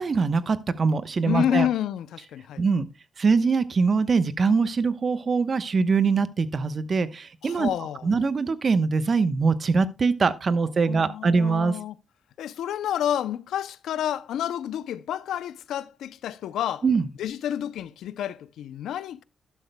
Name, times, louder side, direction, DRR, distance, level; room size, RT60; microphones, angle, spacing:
voice 1, 0.0-1.7 2.6-2.9 3.2-7.7 8.0-11.8 16.8-17.1, right 4 dB, 50° right, 0.9 m, -23 dB
voice 2, 1.2-2.6 7.4-8.0 10.9-11.9 12.4-16.8 17.2-19.2, left 10 dB, 90° left, 0.5 m, -29 dB
12.0 x 11.5 x 2.2 m
cardioid pair, 70°, 0 cm